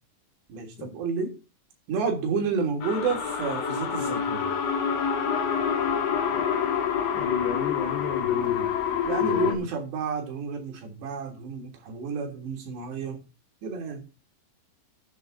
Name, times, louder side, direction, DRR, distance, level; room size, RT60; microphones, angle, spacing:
voice 1, 0.5-1.4 1.9-4.5 9.0-13.2 13.6-14.0, right 5 dB, 85° right, 3 dB, 5.4 m, -30 dB
sound 1, 2.8-9.5, left 7 dB, 50° left, 2.2 m, -27 dB
voice 2, 7.1-8.7 9.2-9.7, left 6 dB, 70° left, 3 dB, 4.0 m, -33 dB
13.0 x 9.3 x 4.1 m, 0.29 s
omnidirectional pair, 4.8 m